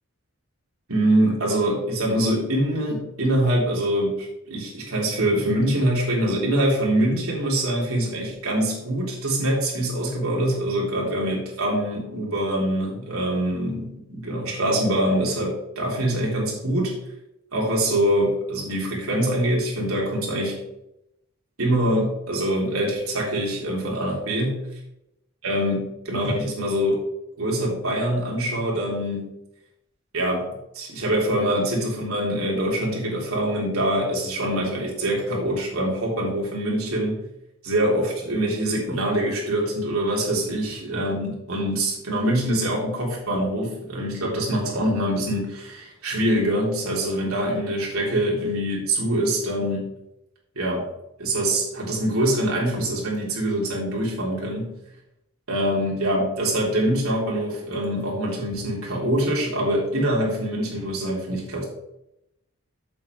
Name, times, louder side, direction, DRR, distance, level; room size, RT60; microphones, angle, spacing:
voice 1, 0.9-17.0 17.5-20.6 21.6-24.7 25.4-27.0 27.4-29.3 30.1-30.5 30.7-37.2 37.6-49.9 50.6-50.9 51.2-54.7 55.5-61.6, right 1 dB, 85° right, -3 dB, 3.7 m, -24 dB
8.3 x 7.3 x 4.7 m, 0.85 s
head